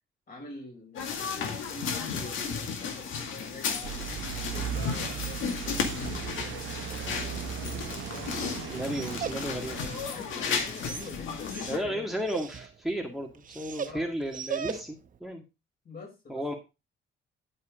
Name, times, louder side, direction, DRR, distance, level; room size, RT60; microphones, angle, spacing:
voice 1, 0.3-8.3 10.0-12.1 13.8-14.1 15.8-16.6, left 3 dB, 50° left, 1 dB, 5.6 m, -46 dB
sound 1, 0.9-11.8, left 6 dB, 85° left, 2.1 m, -34 dB
sound 2, 3.8-10.1, right 11 dB, 75° right, 0.9 m, -37 dB
Dog, 6.9-15.2, right 7 dB, 45° right, 0.9 m, -41 dB
voice 2, 8.7-10.0 11.7-15.4 16.3-16.5, equal, ahead, 2 dB, 1.9 m, -34 dB
11.0 x 5.5 x 5.0 m, 0.26 s
cardioid pair, 90°, 20 cm